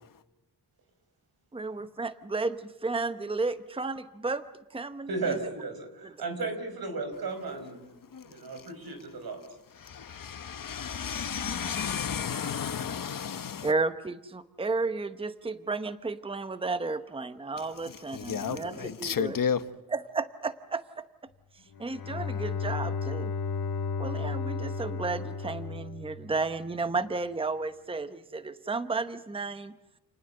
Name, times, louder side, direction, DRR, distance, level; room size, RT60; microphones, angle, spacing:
voice 1, 1.5-4.4 4.7-5.1 6.0-6.1 13.6-19.4 19.9-21.1 21.8-23.3 24.0-29.7, right 3 dB, 15° right, 0.9 m, -33 dB
voice 2, 5.1-7.9 8.2-9.4 18.4-18.9, right 3 dB, 85° right, 5.2 m, -35 dB
voice 3, 9.8-13.7 17.6-19.6, left 7 dB, 65° left, 1.3 m, -33 dB
Bowed string instrument, 21.7-26.7, left 4 dB, 85° left, 2.5 m, -34 dB
29.5 x 19.5 x 7.8 m
wide cardioid pair, 155°, 36 cm